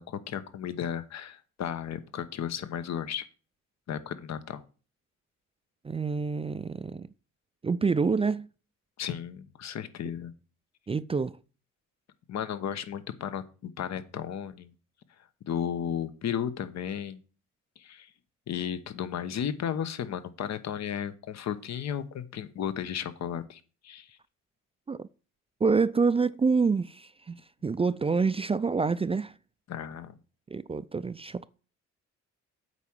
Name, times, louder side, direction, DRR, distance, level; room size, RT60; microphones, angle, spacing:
voice 1, 0.0-3.3 3.9-4.6 9.0-10.3 12.3-14.7 15.5-17.2 17.8-18.1 18.5-24.2 29.7-30.2, left 9 dB, 60° left, 1.0 m, -34 dB
voice 2, 5.8-7.1 7.6-8.5 10.9-11.4 24.9-25.1 25.6-29.3 30.5-31.5, right 4 dB, 20° right, 0.4 m, -27 dB
8.2 x 4.8 x 7.2 m
cardioid pair, 90°, 30 cm